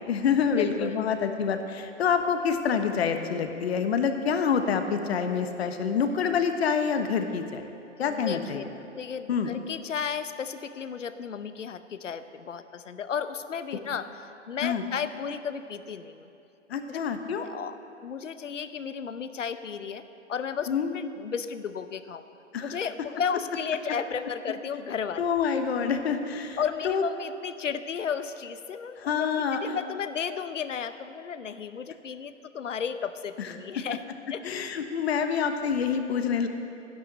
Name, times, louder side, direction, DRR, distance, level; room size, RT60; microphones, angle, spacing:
voice 1, 0.0-7.7 8.0-8.6 9.3-9.5 14.6-14.8 16.7-17.5 20.7-20.9 22.5-22.8 25.2-26.6 26.8-27.0 29.0-29.6 33.4-33.8 34.4-36.5, left 6 dB, 55° left, 7 dB, 1.2 m, -27 dB
voice 2, 0.6-1.0 8.0-8.7 8.9-14.1 14.5-16.3 16.9-17.0 17.4-17.8 18.0-20.0 20.3-22.2 22.6-25.2 26.6-29.3 29.6-34.0 34.3-34.4, left 7 dB, 80° left, 11 dB, 0.8 m, -33 dB
12.0 x 10.5 x 6.5 m, 2.7 s
figure-of-eight pair, 125°, 37 cm